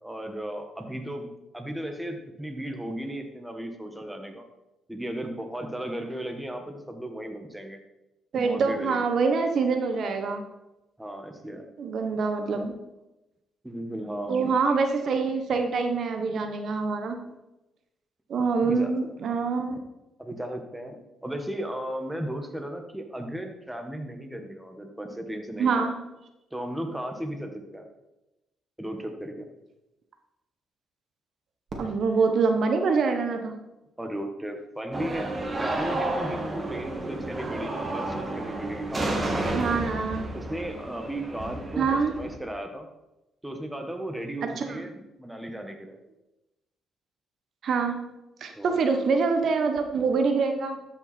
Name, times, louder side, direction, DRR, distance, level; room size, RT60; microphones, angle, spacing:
voice 1, 0.0-4.4 4.9-7.8 8.3-9.0 11.0-11.7 13.6-14.5 18.6-18.9 20.2-21.0 21.2-25.9 26.5-27.9 28.8-29.5 34.0-35.3 35.6-39.5 40.3-42.9 43.4-46.0 48.5-48.8, right 1 dB, 5° right, 4 dB, 1.4 m, -35 dB
voice 2, 8.3-10.4 11.8-12.7 14.3-17.2 18.3-19.8 25.6-25.9 31.8-33.5 39.5-40.3 41.8-42.1 44.6-44.8 47.6-47.9 48.4-50.8, right 4 dB, 60° right, 5 dB, 1.1 m, -25 dB
Fireworks, 31.7-33.9, right 2 dB, 40° right, 2.3 m, -45 dB
sound 1, 34.9-42.4, right 2 dB, 25° right, 1.8 m, -31 dB
13.0 x 5.8 x 4.3 m, 0.97 s
cardioid pair, 90°, 0 cm